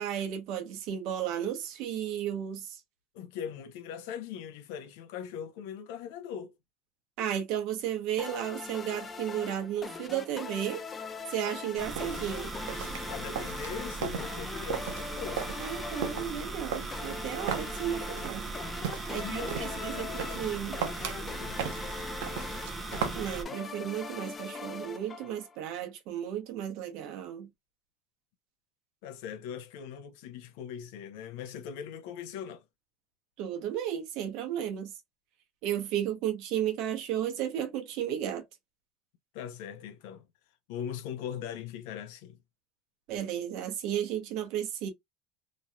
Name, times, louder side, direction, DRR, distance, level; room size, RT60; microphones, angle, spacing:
voice 1, 0.0-2.8 7.2-10.8 11.3-12.5 15.6-18.4 19.1-20.8 23.1-27.5 33.4-34.9 35.6-38.4 43.1-44.9, right 10 dB, 65° right, 0.9 m, -33 dB
voice 2, 3.1-6.5 13.1-15.5 19.1-21.7 29.0-32.6 39.3-40.3 40.7-42.4, left 8 dB, 75° left, 0.7 m, -41 dB
sound 1, 8.2-25.6, left 5 dB, 20° left, 0.4 m, -42 dB
sound 2, 11.7-23.2, right 8 dB, 85° right, 0.7 m, -39 dB
sound 3, 11.8-23.5, right 3 dB, 15° right, 0.7 m, -39 dB
3.0 x 2.7 x 2.3 m
supercardioid pair, 125°, 0 cm